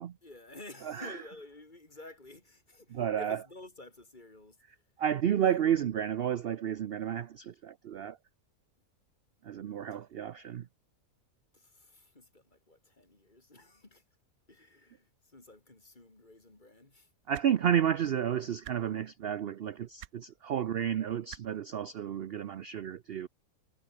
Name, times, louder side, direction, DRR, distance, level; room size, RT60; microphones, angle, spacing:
voice 1, 0.2-4.6 11.5-14.0 14.5-17.1, left 2 dB, 30° left, 3.2 m, -51 dB
voice 2, 0.8-1.2 2.9-3.4 5.0-8.2 9.4-10.7 17.3-23.3, right 9 dB, 55° right, 0.7 m, -31 dB
sound 1, 17.3-17.5 18.6-18.8 20.0-20.1 21.3-21.4 22.7-22.8, right 13 dB, 80° right, 1.1 m, -46 dB
omnidirectional pair, 1.5 m